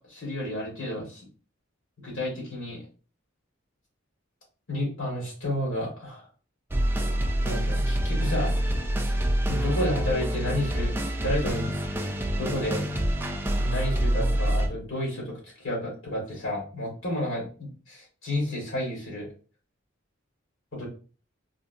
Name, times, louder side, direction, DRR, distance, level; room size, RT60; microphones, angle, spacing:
voice 1, 0.1-1.2 2.0-2.8 4.7-6.3 7.4-8.6 9.5-11.8 12.4-12.8 13.6-19.3 20.7-20.9, left 1 dB, 80° left, -3 dB, 1.8 m, -31 dB
sound 1, 6.7-14.7, right 1 dB, 10° right, 0.4 m, -26 dB
3.7 x 2.6 x 2.5 m, 0.37 s
head